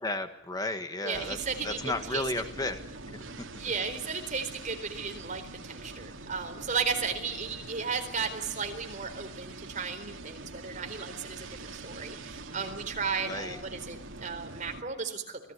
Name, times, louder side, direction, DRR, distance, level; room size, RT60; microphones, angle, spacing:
voice 1, 0.0-1.4 1.6-2.8 3.0-3.2 13.2-13.6, left 2 dB, 20° left, 8 dB, 1.5 m, -33 dB
voice 2, 1.0-1.8 2.1-2.2 3.6-15.4, right 5 dB, 40° right, 6 dB, 4.2 m, -35 dB
sound 1, 1.1-14.8, right 2 dB, 75° right, 2.4 m, -44 dB
28.5 x 20.5 x 9.6 m, 0.73 s
head